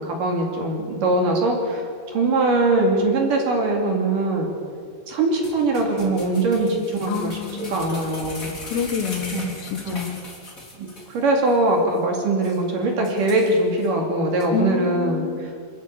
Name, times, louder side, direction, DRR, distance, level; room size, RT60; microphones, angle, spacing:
voice 1, 0.0-4.5 5.1-8.5 9.3-9.5 9.8-10.0 10.8-15.2, right 2 dB, 50° right, 1 dB, 3.7 m, -22 dB
sound 1, 5.4-11.2 11.5-11.6 12.0-12.1 12.4-12.6 13.0-13.9 14.4-14.5, left 2 dB, 20° left, 3.4 m, -38 dB
voice 2, 7.1-7.8 8.6-10.2 14.5-15.4, left 7 dB, 70° left, 6 dB, 3.2 m, -28 dB
26.5 x 13.5 x 9.1 m, 2.3 s
omnidirectional pair, 5.4 m